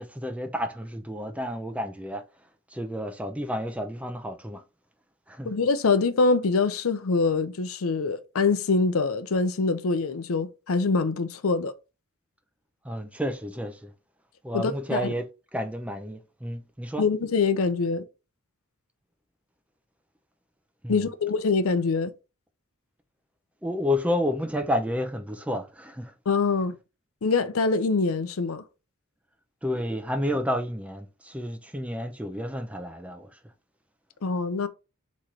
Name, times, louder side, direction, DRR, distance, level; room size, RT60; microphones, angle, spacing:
voice 1, 0.0-2.2 2.7-4.6 5.3-5.5 12.8-13.9 14.4-15.3 15.5-17.0 20.8-21.0 23.6-26.1 29.6-33.3, left 1 dB, 5° right, 0.5 m, -30 dB
voice 2, 5.4-11.7 14.5-15.1 17.0-18.0 20.9-22.1 26.3-26.8 27.2-28.6 34.2-34.7, left 4 dB, 90° left, 0.6 m, -24 dB
4.3 x 3.1 x 3.8 m
head